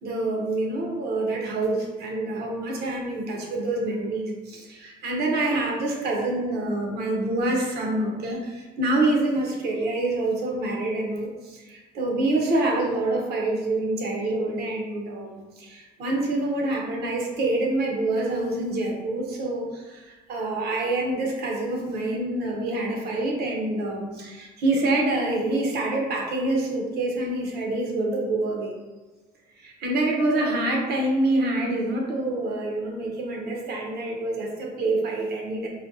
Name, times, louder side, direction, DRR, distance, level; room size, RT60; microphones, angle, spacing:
voice 1, 0.0-28.7 29.6-35.7, right 2 dB, 70° right, 0 dB, 0.8 m, -26 dB
4.1 x 2.2 x 2.5 m, 1.2 s
cardioid pair, 110°, 17 cm